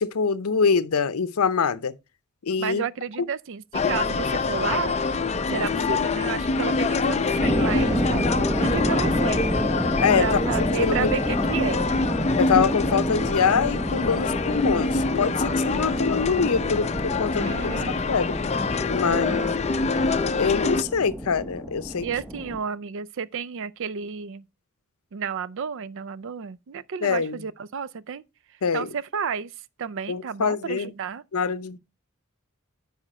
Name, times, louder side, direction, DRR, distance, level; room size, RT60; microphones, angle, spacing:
voice 1, 0.0-1.9 2.5-2.8 10.0-10.2 10.6-11.1 12.4-17.7 18.1-18.4 18.9-19.4 20.3-22.1 27.0-27.4 28.6-28.9 30.1-30.9 31.3-31.8, left 5 dB, 75° left, 0.6 m, -24 dB
voice 2, 2.6-5.0 5.5-9.4 10.2-11.9 17.4-17.9 19.0-19.6 22.0-24.4 25.1-28.2 28.7-29.5 29.8-31.2, right 6 dB, 60° right, 0.4 m, -32 dB
sound 1, 3.7-20.8, left 4 dB, 30° left, 0.5 m, -25 dB
sound 2, 7.4-22.6, equal, 5° right, 0.8 m, -29 dB
9.9 x 5.0 x 4.2 m
head